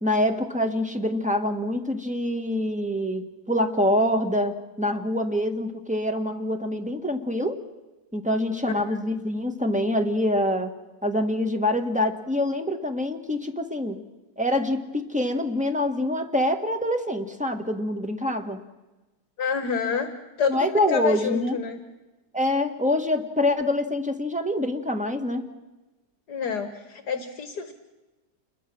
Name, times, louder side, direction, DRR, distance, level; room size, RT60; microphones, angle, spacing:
voice 1, 0.0-7.6 8.1-10.7 11.0-14.0 14.4-18.6 20.5-21.6 22.3-25.5, left 1 dB, 5° right, 4 dB, 1.6 m, -25 dB
voice 2, 19.4-20.1 20.4-21.8 26.3-27.7, left 6 dB, 65° left, 8 dB, 2.0 m, -28 dB
28.5 x 22.0 x 6.2 m, 1.1 s
omnidirectional pair, 1.9 m